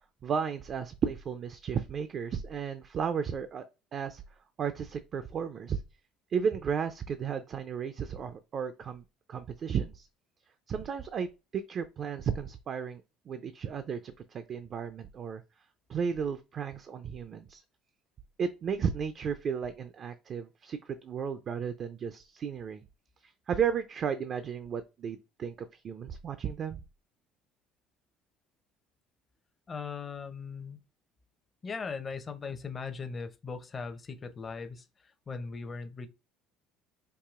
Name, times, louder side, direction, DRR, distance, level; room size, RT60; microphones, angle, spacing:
voice 1, 0.2-3.6 3.9-4.2 4.6-5.8 6.3-9.0 9.3-10.1 10.7-13.0 13.3-15.4 15.9-17.6 18.4-22.8 23.5-26.8, right 7 dB, 50° right, 0.4 m, -34 dB
voice 2, 29.7-30.8 31.6-36.1, left 5 dB, 35° left, 0.6 m, -39 dB
4.7 x 2.6 x 2.4 m
supercardioid pair, 80°, 0 cm